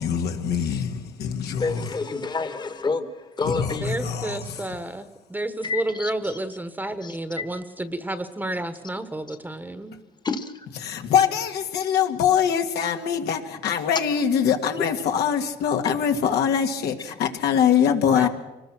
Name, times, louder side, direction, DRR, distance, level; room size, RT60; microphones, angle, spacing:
voice 1, 0.0-1.9 3.4-4.7 10.8-18.3, left 8 dB, 75° left, 1.9 m, -23 dB
voice 2, 1.6-3.8 5.6-6.4 7.0-7.2 9.3-9.4 10.2-10.7 15.8-15.9, left 4 dB, 25° left, 1.5 m, -29 dB
voice 3, 3.8-10.0 18.1-18.3, right 1 dB, 10° right, 1.3 m, -31 dB
25.0 x 20.0 x 6.2 m
cardioid pair, 110°, 17 cm